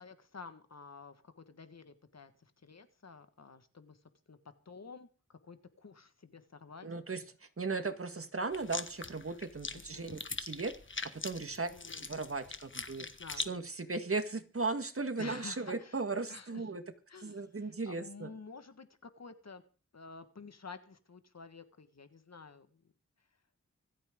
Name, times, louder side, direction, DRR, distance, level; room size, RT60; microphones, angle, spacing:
voice 1, 0.0-4.0 4.3-4.4 4.6-6.9 9.7-10.3 11.6-12.1 13.0-13.5 15.2-16.0 16.3-16.6 17.1-19.6 19.9-22.8, left 4 dB, 60° left, 10 dB, 1.7 m, -51 dB
voice 2, 6.8-10.7 11.1-11.7 12.0-13.1 13.4-16.8 17.2-18.3, right 3 dB, 45° right, 9 dB, 1.7 m, -37 dB
sound 1, 8.5-13.5, left 3 dB, 40° left, 1.4 m, -42 dB
25.5 x 8.8 x 3.8 m, 0.37 s
wide cardioid pair, 75°, 30 cm